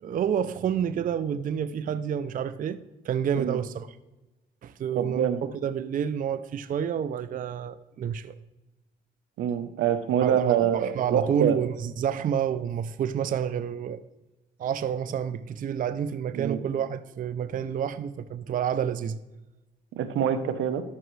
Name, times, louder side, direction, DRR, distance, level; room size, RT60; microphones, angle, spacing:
voice 1, 0.0-2.8 3.0-4.0 4.6-5.3 5.6-8.3 10.2-14.0 14.6-19.2, right 8 dB, 45° right, 0.4 m, -29 dB
voice 2, 5.0-5.4 9.4-11.6 16.3-16.6 19.9-20.8, right 9 dB, 80° right, 0.8 m, -25 dB
12.5 x 5.7 x 3.2 m
cardioid pair, 90°, 20 cm